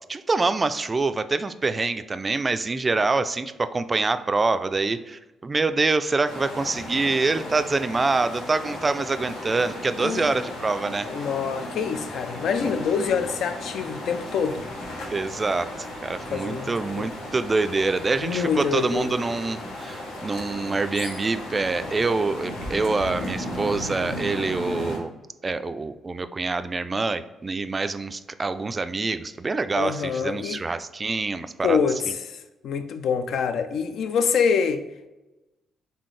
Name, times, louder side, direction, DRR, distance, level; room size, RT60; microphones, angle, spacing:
voice 1, 0.0-11.1 15.1-25.1 25.4-31.8 32.1-32.2, right 3 dB, 25° right, 0.3 m, -25 dB
sound 1, 6.3-25.0, left 1 dB, 90° left, 1.0 m, -35 dB
voice 2, 11.0-14.6 16.3-17.1 18.2-19.1 29.8-30.6 31.6-32.4 32.6-34.8, left 6 dB, 70° left, 0.4 m, -25 dB
4.3 x 3.5 x 3.2 m
cardioid pair, 90°, 0 cm